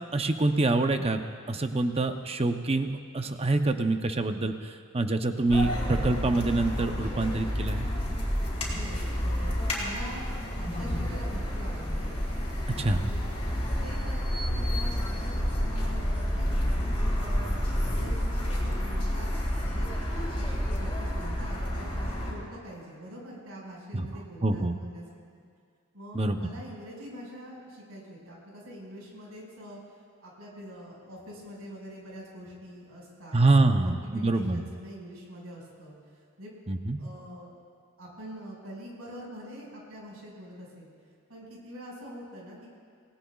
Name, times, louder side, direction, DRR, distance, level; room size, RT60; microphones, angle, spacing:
voice 1, 0.1-1.2 1.5-4.5 4.9-7.9 12.8-13.0 23.9-24.1 24.4-24.8 26.1-26.4 33.3-34.6 36.7-37.0, right 2 dB, 30° right, 7 dB, 0.7 m, -25 dB
sound 1, 5.5-22.3, equal, 25° left, 4.5 m, -29 dB
voice 2, 8.7-12.2 12.7-13.5 13.8-16.6 17.1-25.4 25.9-29.8 30.2-33.5 33.8-36.0 36.4-36.5 37.0-37.5 38.0-40.9 41.3-42.7, equal, 80° right, -3 dB, 5.3 m, -45 dB
27.5 x 18.5 x 2.4 m, 2.2 s
head